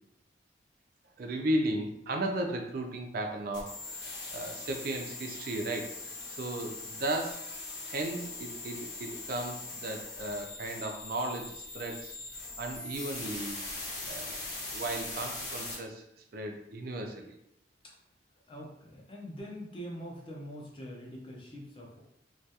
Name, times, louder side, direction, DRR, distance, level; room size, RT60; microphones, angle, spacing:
voice 1, 1.2-7.6 7.9-12.1 12.6-13.6 14.1-14.4 14.7-16.0 16.3-17.4, right 1 dB, 50° right, 3 dB, 0.3 m, -35 dB
sound 1, 3.5-15.7, left 3 dB, 70° left, 0.8 m, -41 dB
voice 2, 18.5-22.0, equal, 30° left, -3 dB, 0.5 m, -44 dB
2.3 x 2.2 x 2.7 m, 0.77 s
head